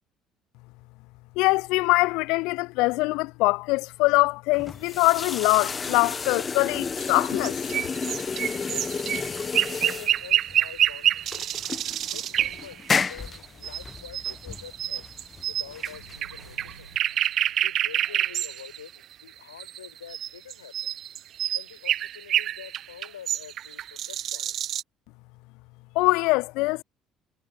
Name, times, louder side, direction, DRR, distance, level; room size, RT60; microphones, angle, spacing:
voice 1, 1.4-7.6 26.0-26.8, left 24 dB, 65° left, 0.4 m, -23 dB
sound 1, 4.5-17.0, left 5 dB, 30° left, 1.0 m, -32 dB
sound 2, 7.0-24.8, right 11 dB, 50° right, 0.4 m, -28 dB
voice 2, 8.5-9.1 9.4-11.5 12.1-16.9 17.6-18.9 19.2-20.9 21.5-24.6, left 9 dB, 80° left, 5.5 m, -47 dB
sound 3, 15.9-19.0, right 5 dB, 85° right, 6.8 m, -54 dB
figure-of-eight pair, 55°, 0 cm